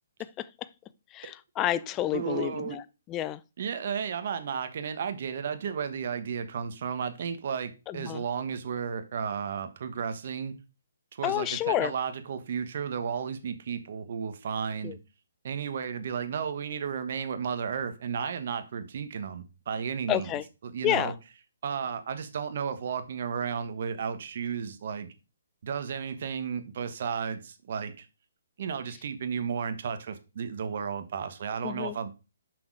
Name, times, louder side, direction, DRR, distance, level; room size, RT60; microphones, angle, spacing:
voice 1, 1.1-3.4 7.9-8.2 11.2-11.9 14.8-15.0 20.1-20.4 20.8-21.1 31.6-32.0, left 13 dB, 20° left, 0.4 m, -29 dB
voice 2, 2.1-2.8 3.6-10.5 11.1-15.0 15.4-20.3 20.6-21.1 21.6-25.1 25.6-28.1 28.6-32.1, right 7 dB, 55° right, 1.2 m, -33 dB
6.2 x 5.8 x 4.7 m
hypercardioid pair, 150°, 0 cm